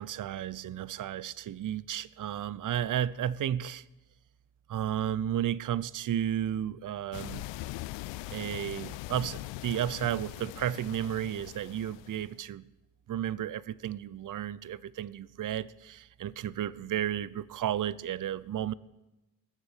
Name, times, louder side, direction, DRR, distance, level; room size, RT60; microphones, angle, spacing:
voice 1, 0.0-3.8 4.7-7.5 8.3-12.7 13.1-18.7, right 10 dB, 40° right, 0.7 m, -33 dB
sound 1, 7.1-12.4, left 18 dB, 65° left, 0.6 m, -41 dB
20.0 x 7.4 x 9.3 m
hypercardioid pair, 45°, 48 cm